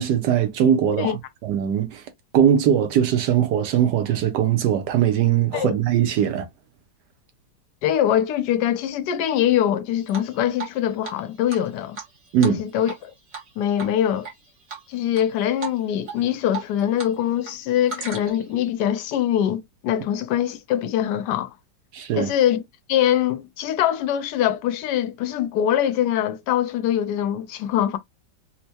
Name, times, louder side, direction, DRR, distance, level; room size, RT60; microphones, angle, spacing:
voice 1, 0.0-2.0 2.3-6.5 12.3-12.6 21.9-22.3, right 9 dB, 75° right, 1.3 m, -20 dB
voice 2, 7.8-12.0 12.4-13.1 13.6-14.3 14.9-21.5 22.1-22.6 22.9-28.0, left 10 dB, 75° left, 1.1 m, -23 dB
Drip, 10.1-10.8 11.0-11.1 11.5-13.0 13.3-13.5 13.8-14.3 14.7-15.2 15.6-15.8 16.1-17.1 17.4-18.5, right 5 dB, 50° right, 1.5 m, -35 dB
4.4 x 2.1 x 2.7 m
omnidirectional pair, 1.9 m